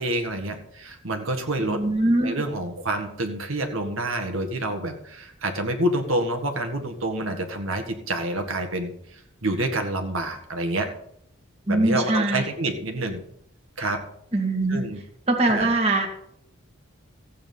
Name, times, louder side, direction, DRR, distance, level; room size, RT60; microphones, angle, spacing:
voice 1, 0.0-1.8 2.2-10.9 11.7-13.2 13.8-14.0 14.7-15.0 15.5-15.7, right 1 dB, 70° right, 5 dB, 1.7 m, -28 dB
voice 2, 1.7-2.3 11.7-12.4 14.3-14.9 15.3-16.1, right 2 dB, 30° right, 3 dB, 1.9 m, -22 dB
15.0 x 8.6 x 5.5 m, 0.72 s
head